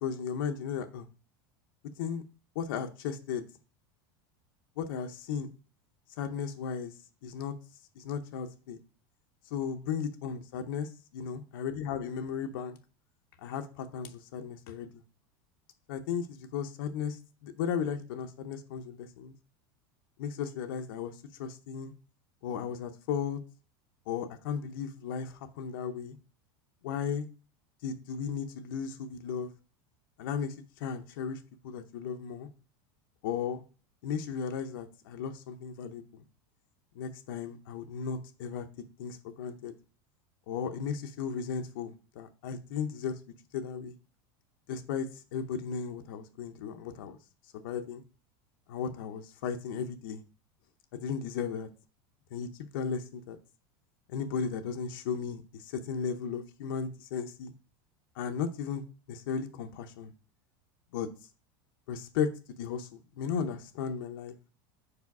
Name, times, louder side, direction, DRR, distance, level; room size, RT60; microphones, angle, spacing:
voice 1, 0.0-1.1 2.0-2.2 2.6-3.4 4.8-5.5 6.2-6.9 7.2-7.5 8.0-8.8 9.5-12.8 13.4-14.9 15.9-17.2 17.4-19.3 20.2-21.1 21.4-21.9 22.4-23.4 24.1-26.2 26.8-27.3 27.8-29.5 30.2-30.5 30.8-31.4 31.6-32.5 33.2-33.6 34.0-36.2 37.0-38.7 39.0-39.7 40.5-43.1 43.5-44.0 44.7-47.2 47.5-48.0 48.7-50.2 50.9-51.7 52.3-53.4 54.1-57.5 58.2-58.8 59.1-60.1 60.9-61.1 61.9-62.3 62.6-64.3, left 7 dB, 70° left, 6 dB, 0.7 m, -35 dB
5.0 x 4.8 x 4.7 m, 0.37 s
supercardioid pair, 170°, 12 cm